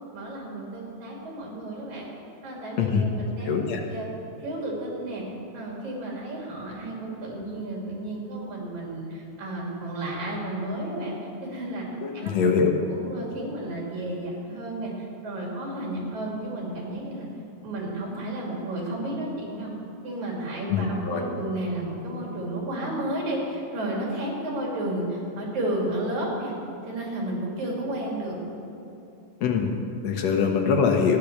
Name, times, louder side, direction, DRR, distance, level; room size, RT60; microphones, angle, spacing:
voice 1, 0.1-2.1 2.4-3.5 3.8-4.1 4.4-5.2 5.5-11.2 11.4-11.9 12.1-12.3 12.9-17.3 17.6-19.7 20.0-26.5 26.9-28.4, right 1 dB, 75° right, -2 dB, 4.1 m, -32 dB
voice 2, 3.5-3.8 12.0-12.7 20.7-21.2 29.4-31.2, left 6 dB, 70° left, 3 dB, 2.2 m, -23 dB
14.0 x 10.5 x 6.6 m, 2.9 s
omnidirectional pair, 3.3 m